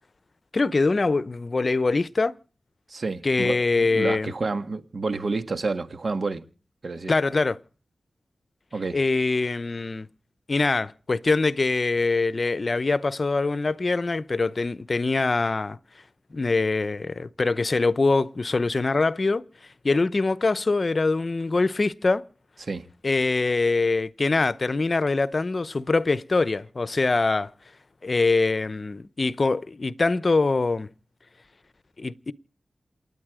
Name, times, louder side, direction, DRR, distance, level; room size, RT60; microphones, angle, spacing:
voice 1, 0.5-2.3 3.2-4.3 7.1-7.6 8.9-10.1 10.5-15.8 16.3-19.4 19.8-22.2 23.0-27.5 28.0-30.9 32.0-32.3, left 3 dB, 40° left, 0.8 m, -23 dB
voice 2, 2.9-3.6 3.8-6.4 6.8-7.1 8.7-9.0 22.6-22.9, right 3 dB, 50° right, 1.8 m, -29 dB
28.5 x 9.7 x 5.0 m
wide cardioid pair, 105°, 0 cm